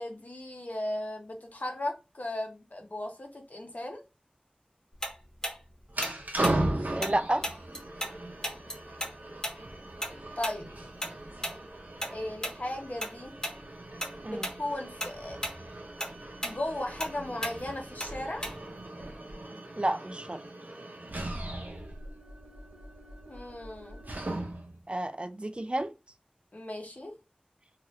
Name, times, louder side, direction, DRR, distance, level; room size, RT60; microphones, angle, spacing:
voice 1, 0.0-4.0 10.4-10.7 12.1-13.3 14.3-15.4 16.4-18.5 23.2-24.0 26.5-27.1, left 1 dB, 65° left, 0.8 m, -36 dB
Tick-tock, 5.0-8.2 8.4-13.1 13.4-13.6 14.0-14.6 14.9-18.8, equal, 25° left, 1.0 m, -36 dB
sound 1, 5.9-24.8, right 1 dB, 90° right, 0.6 m, -38 dB
voice 2, 7.0-7.4 14.2-14.5 19.8-20.4 24.9-25.9, right 1 dB, 40° right, 0.3 m, -30 dB
2.8 x 2.4 x 3.0 m
wide cardioid pair, 45°, 3 cm